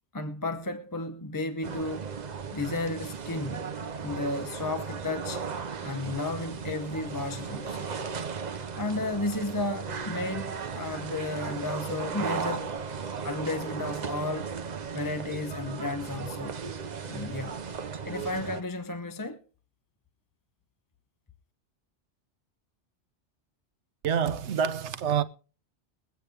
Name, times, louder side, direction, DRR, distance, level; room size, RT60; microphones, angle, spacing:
voice 1, 0.1-2.1 2.5-3.7 4.0-5.4 5.8-7.9 8.8-12.7 13.2-14.5 14.9-16.6 17.1-17.6 18.0-19.4, left 2 dB, 20° left, 0.8 m, -33 dB
sound 1, 1.6-18.6, right 5 dB, 45° right, 0.8 m, -36 dB
voice 2, 24.0-25.2, right 8 dB, 75° right, 1.1 m, -27 dB
21.5 x 8.1 x 3.4 m
omnidirectional pair, 1.2 m